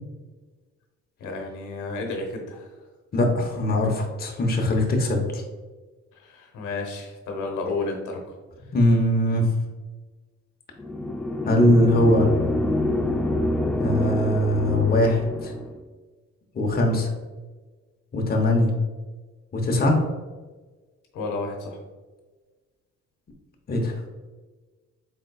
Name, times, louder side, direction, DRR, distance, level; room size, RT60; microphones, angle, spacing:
voice 1, 1.2-2.7 6.1-8.4 21.1-21.8, left 3 dB, 85° left, 2 dB, 0.9 m, -32 dB
voice 2, 3.1-5.4 8.7-9.5 11.4-12.3 13.8-15.5 16.5-17.1 18.1-18.7 19.5-20.0 23.7-24.0, left 1 dB, 30° left, 1 dB, 0.8 m, -21 dB
sound 1, 10.8-15.7, left 1 dB, 5° left, 0.5 m, -26 dB
4.3 x 3.8 x 2.2 m, 1.3 s
cardioid pair, 90°, 30 cm